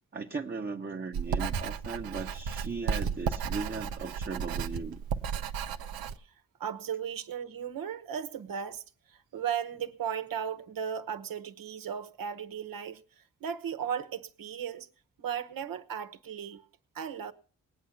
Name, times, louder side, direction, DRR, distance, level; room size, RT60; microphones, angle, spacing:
voice 1, 0.1-5.0, right 4 dB, 30° right, 1.1 m, -37 dB
Writing, 1.1-6.2, right 7 dB, 90° right, 0.7 m, -33 dB
voice 2, 6.6-14.9 15.2-16.6 16.9-17.3, right 8 dB, 75° right, 1.2 m, -36 dB
19.0 x 8.4 x 5.6 m
supercardioid pair, 40°, 35 cm